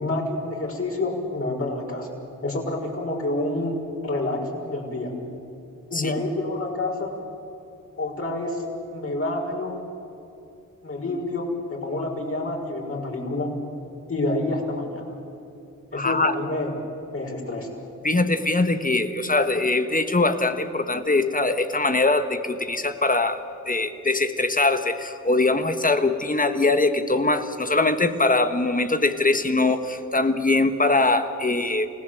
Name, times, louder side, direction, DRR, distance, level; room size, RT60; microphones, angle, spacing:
voice 1, 0.0-3.8 4.0-5.1 5.9-7.1 8.0-8.6 8.9-9.8 10.8-13.5 14.1-15.0 15.9-16.7 17.1-17.7, left 2 dB, 45° left, 0 dB, 5.8 m, -28 dB
voice 2, 15.9-16.3 18.0-31.9, left 2 dB, 25° left, 8 dB, 1.5 m, -22 dB
29.5 x 17.0 x 7.9 m, 2.8 s
cardioid pair, 70°, 31 cm